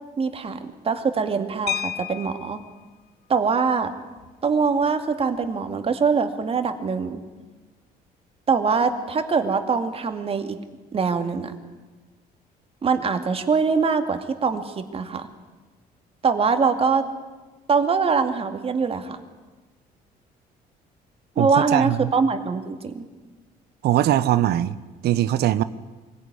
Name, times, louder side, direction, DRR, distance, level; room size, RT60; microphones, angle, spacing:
voice 1, 0.2-2.6 3.3-3.9 4.4-7.2 8.5-10.6 10.9-11.5 12.8-15.3 16.2-17.1 17.7-19.2 21.4-23.1, right 5 dB, 35° right, 8 dB, 2.3 m, -23 dB
sound 1, 1.7-2.7 4.2-4.3 4.7-4.8 5.2-5.5, left 10 dB, 70° left, 1.0 m, -31 dB
voice 2, 21.4-22.1 23.8-24.8 25.0-25.6, right 13 dB, 75° right, 15 dB, 0.9 m, -21 dB
24.0 x 17.0 x 9.9 m, 1.3 s
cardioid pair, 110°, 17 cm